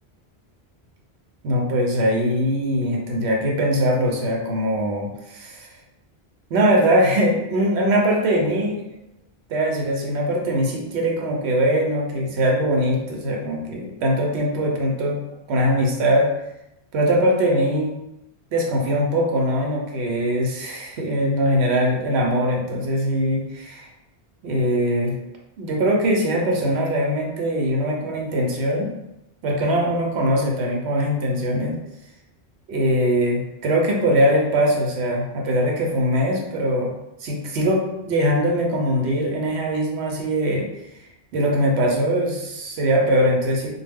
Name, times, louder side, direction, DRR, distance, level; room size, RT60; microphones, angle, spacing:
voice 1, 1.4-5.7 6.5-8.8 9.5-15.2 15.5-16.3 16.9-17.9 18.5-23.9 24.4-25.1 25.6-28.9 29.4-31.8 32.7-36.9 37.2-40.7 41.0-43.7, equal, 80° right, 0 dB, 0.9 m, -21 dB
2.2 x 2.1 x 3.4 m, 0.88 s
omnidirectional pair, 1.1 m